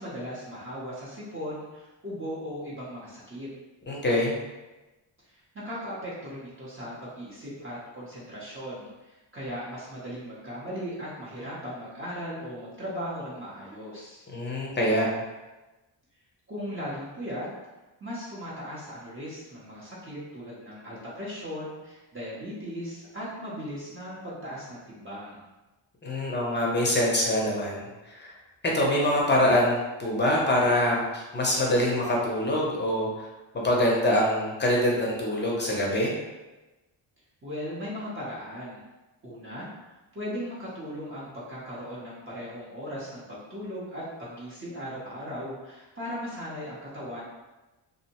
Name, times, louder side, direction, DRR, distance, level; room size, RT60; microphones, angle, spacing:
voice 1, 0.0-3.5 5.3-14.3 16.5-17.5 18.0-25.4 37.4-38.8 39.2-39.7 40.1-47.2, equal, 25° right, -9 dB, 0.6 m, -37 dB
voice 2, 3.9-4.4 14.3-15.1 26.0-28.3 28.6-33.3 33.5-36.1, left 1 dB, 25° left, -3 dB, 0.5 m, -25 dB
2.6 x 2.0 x 2.8 m, 1.1 s
wide cardioid pair, 115°, 49 cm